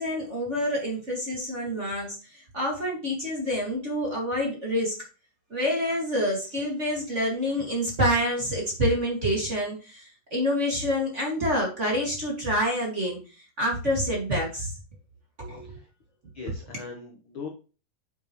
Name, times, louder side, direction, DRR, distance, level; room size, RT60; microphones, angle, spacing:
voice 1, 0.0-5.0 5.5-14.7 15.4-15.7, equal, 25° right, -2 dB, 1.9 m, -27 dB
voice 2, 16.3-17.5, left 5 dB, 65° left, 1 dB, 1.2 m, -40 dB
8.3 x 7.0 x 3.1 m, 0.34 s
omnidirectional pair, 3.9 m